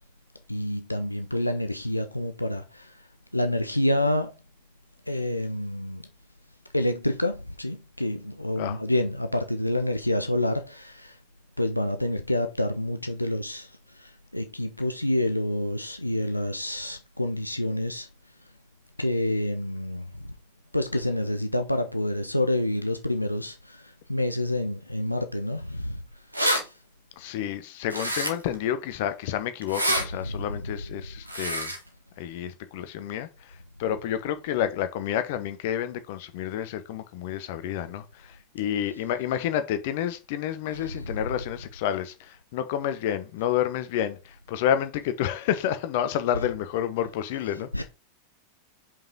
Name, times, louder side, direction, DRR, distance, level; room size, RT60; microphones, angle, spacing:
voice 1, 0.5-3.0 3.3-4.3 5.1-6.1 6.7-11.2 11.6-18.1 19.0-20.3 20.7-26.0 26.6-26.7 30.2-30.5 40.7-41.0 47.7-47.8, left 1 dB, 85° left, 0.6 m, -28 dB
sound 1, 26.1-26.6 27.9-28.5 29.6-30.0 31.3-31.8, equal, 85° right, 1.6 m, -26 dB
voice 2, 27.2-31.7 32.2-47.7, left 10 dB, 50° left, 1.0 m, -29 dB
5.6 x 5.4 x 4.6 m
figure-of-eight pair, 90°, 0 cm